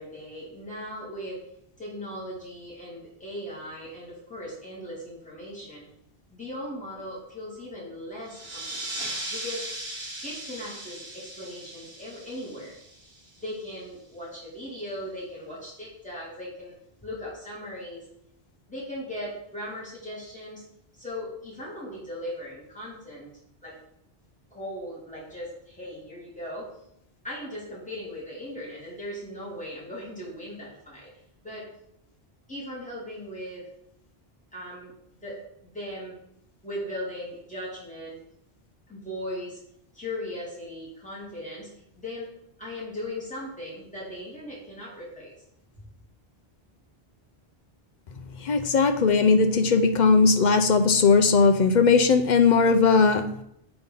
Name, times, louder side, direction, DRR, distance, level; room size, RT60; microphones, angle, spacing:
voice 1, 0.0-1.4 1.8-5.8 6.3-8.9 9.3-9.7 10.2-12.7 13.4-16.7 17.0-18.1 18.7-20.6 20.9-23.3 23.6-23.7 24.5-26.7 27.2-31.1 31.4-31.7 32.5-33.6 34.5-34.9 35.2-36.2 36.6-38.2 38.9-39.6 39.9-41.7 42.0-42.3 42.6-45.3, left 1 dB, 5° left, -6 dB, 2.9 m, -38 dB
sound 1, 8.3-13.5, right 1 dB, 70° right, 1.6 m, -38 dB
voice 2, 48.4-53.3, left 4 dB, 50° left, 8 dB, 0.7 m, -19 dB
7.8 x 4.0 x 5.5 m, 0.74 s
omnidirectional pair, 1.1 m